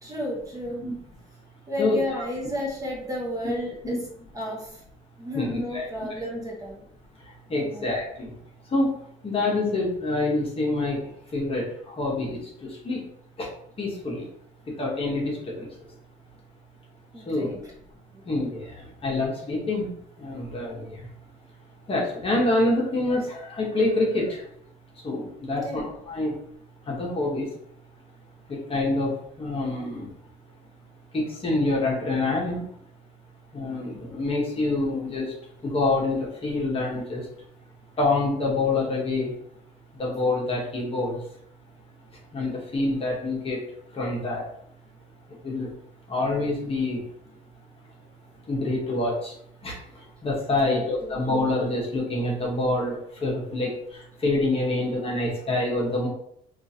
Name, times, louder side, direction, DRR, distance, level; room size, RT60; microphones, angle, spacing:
voice 1, 0.0-0.8 1.7-4.0 4.3-4.7 5.2-6.8 7.6-7.9 17.1-17.6 25.5-25.8 50.6-51.2, left 1 dB, 20° right, -3 dB, 0.8 m, -32 dB
voice 2, 1.8-2.3 3.8-4.0 5.3-5.9 7.5-8.3 8.7-8.9 9.2-11.0 11.3-13.0 13.4-13.5 13.8-14.3 14.8-15.7 17.3-17.5 18.3-18.7 19.0-19.9 20.2-20.9 21.9-24.4 25.0-26.4 26.9-27.5 28.5-29.1 29.4-30.1 31.1-32.6 33.5-35.3 35.6-37.2 38.0-39.3 40.0-41.2 42.3-43.6 43.9-44.4 45.4-45.7 46.1-47.0 48.5-49.3 49.6-49.7 50.2-53.7 54.2-56.1, left 2 dB, 35° left, -2 dB, 1.0 m, -26 dB
2.8 x 2.4 x 2.7 m, 0.69 s
cardioid pair, 110°, 17 cm